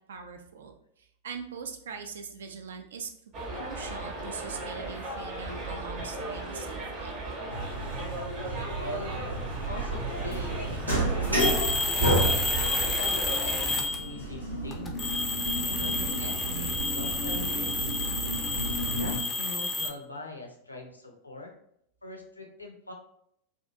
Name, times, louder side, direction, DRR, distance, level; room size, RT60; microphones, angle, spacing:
voice 1, 0.1-3.1 3.5-7.2, right 5 dB, 65° right, 6 dB, 0.4 m, -42 dB
Subway metro underground, 3.3-13.7, right 2 dB, 40° right, 0.8 m, -37 dB
sound 1, 7.5-19.2, right 2 dB, 85° right, 1.0 m, -31 dB
voice 2, 8.5-9.4 9.7-11.8 12.5-15.2 15.6-17.9 18.9-21.5 22.0-22.9, left 3 dB, 80° left, 2 dB, 0.5 m, -42 dB
sound 2, 11.4-14.2 14.7-19.9, left 2 dB, 15° left, 0.4 m, -30 dB
2.5 x 2.3 x 2.5 m, 0.71 s
figure-of-eight pair, 90°, 0 cm